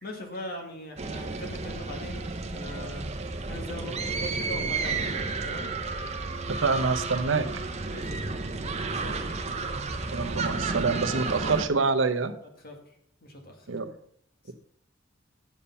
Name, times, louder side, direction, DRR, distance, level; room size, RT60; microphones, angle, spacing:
voice 1, 0.0-3.1 3.5-5.7 7.8-8.4 9.0-9.2 12.6-12.8 13.2-13.7, left 1 dB, 50° left, 2 dB, 2.1 m, -40 dB
sound 1, 1.0-11.7, right 3 dB, 35° right, 0.8 m, -32 dB
voice 2, 6.5-7.5 10.1-12.3 13.7-13.9, right 4 dB, 75° right, 8 dB, 0.8 m, -26 dB
8.3 x 7.1 x 5.5 m, 0.64 s
head